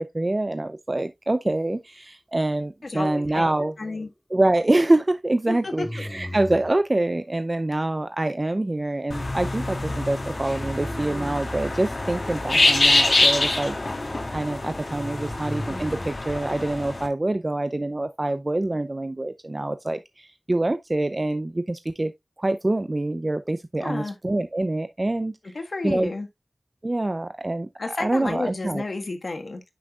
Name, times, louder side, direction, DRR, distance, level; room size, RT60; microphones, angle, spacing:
voice 1, 0.0-3.7 4.3-22.1 22.4-25.5 25.8-26.1 26.8-28.8, right 2 dB, 45° right, 0.6 m, -25 dB
voice 2, 2.8-3.4 3.8-4.1 5.5-5.9 23.8-24.2 25.4-26.3 27.8-29.6, left 3 dB, 85° left, 1.6 m, -31 dB
sound 1, 3.1-3.7 5.8-6.7 10.5-11.6 14.9-16.2, left 1 dB, 10° left, 2.7 m, -36 dB
sound 2, 9.1-17.1, left 2 dB, 70° left, 2.4 m, -25 dB
10.0 x 5.9 x 2.4 m
wide cardioid pair, 45°, 0 cm